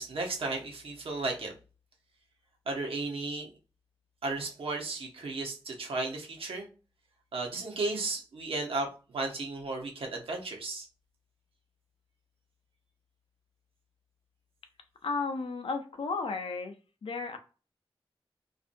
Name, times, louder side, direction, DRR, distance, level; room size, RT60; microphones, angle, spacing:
voice 1, 0.0-1.5 2.7-3.5 4.2-6.7 7.3-8.9 9.1-10.9, right 3 dB, 85° right, 0 dB, 0.9 m, -34 dB
voice 2, 15.0-16.8 17.0-17.4, left 4 dB, 75° left, 6 dB, 0.6 m, -33 dB
2.5 x 2.4 x 2.5 m, 0.35 s
cardioid pair, 55°, 9 cm